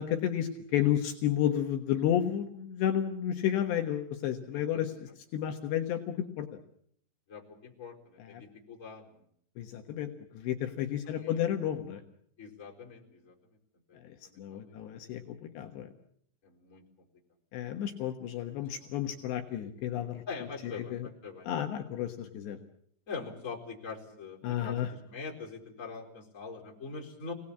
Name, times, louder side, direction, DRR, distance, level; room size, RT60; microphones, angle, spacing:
voice 1, 0.0-6.5 8.2-8.4 9.6-12.0 14.0-15.9 17.5-20.2 20.6-21.1 21.4-22.6 24.4-24.9, left 10 dB, 70° left, 3 dB, 3.3 m, -32 dB
voice 2, 4.5-4.8 7.3-9.2 11.0-11.4 12.4-13.6 13.9-14.7 16.4-16.8 18.6-18.9 20.3-21.5 23.1-27.3, left 4 dB, 15° left, 0 dB, 4.2 m, -44 dB
26.5 x 19.0 x 8.6 m, 0.67 s
omnidirectional pair, 5.4 m